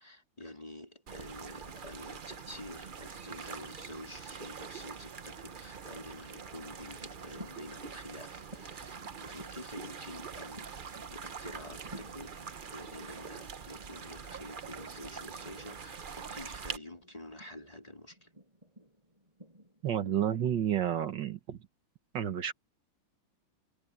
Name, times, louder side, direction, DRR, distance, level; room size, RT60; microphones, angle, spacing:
voice 1, 0.0-12.4 12.7-18.3, left 1 dB, 20° left, 3.7 m, -48 dB
sound 1, 1.1-16.8, right 6 dB, 50° right, 0.6 m, -44 dB
sound 2, 7.2-21.4, right 1 dB, 15° right, 4.8 m, -56 dB
voice 2, 19.8-21.6 22.1-22.5, right 10 dB, 65° right, 1.8 m, -30 dB
omnidirectional pair, 2.1 m